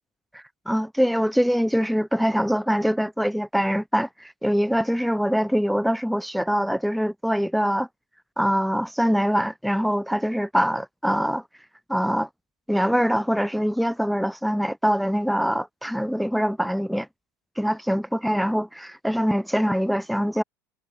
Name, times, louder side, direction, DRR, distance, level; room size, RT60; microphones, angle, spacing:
voice 1, 0.3-7.9 8.4-11.4 11.9-12.3 12.7-17.1 17.6-20.4, equal, ahead, 0.6 m, -23 dB
hypercardioid pair, 90°, 9 cm